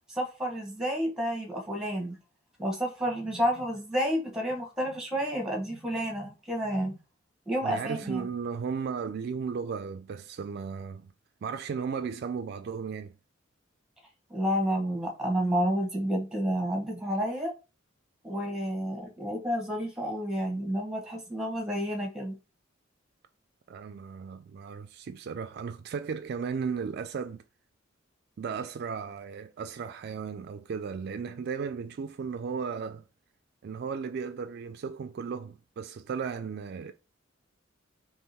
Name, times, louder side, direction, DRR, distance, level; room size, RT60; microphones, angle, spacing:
voice 1, 0.1-2.2 2.6-7.0 7.5-8.3 14.3-17.5 18.2-22.3, equal, 5° right, 1.1 m, -30 dB
voice 2, 7.6-11.1 11.4-13.1 23.7-27.4 28.4-33.0 33.6-36.9, right 6 dB, 55° right, 0.3 m, -35 dB
3.7 x 2.9 x 4.1 m
head